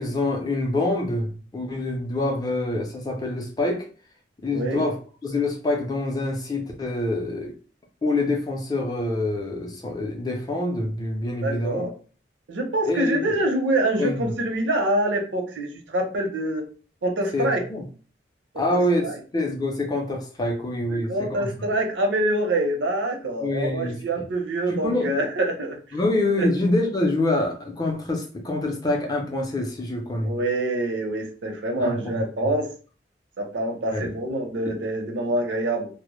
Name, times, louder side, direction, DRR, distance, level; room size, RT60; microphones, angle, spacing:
voice 1, 0.0-3.9 4.4-7.5 8.0-11.9 12.9-13.4 14.0-14.3 17.3-17.8 18.6-21.5 23.4-24.0 24.7-25.1 25.9-30.3 31.8-32.5 33.9-34.1 34.7-34.8, left 2 dB, 20° left, 1 dB, 0.4 m, -26 dB
voice 2, 11.4-11.9 12.5-16.6 17.0-17.6 18.5-18.7 19.0-19.2 20.9-25.8 26.4-26.5 30.2-32.7 33.4-35.9, right 1 dB, 85° right, 3 dB, 0.6 m, -25 dB
2.0 x 2.0 x 2.9 m, 0.39 s
head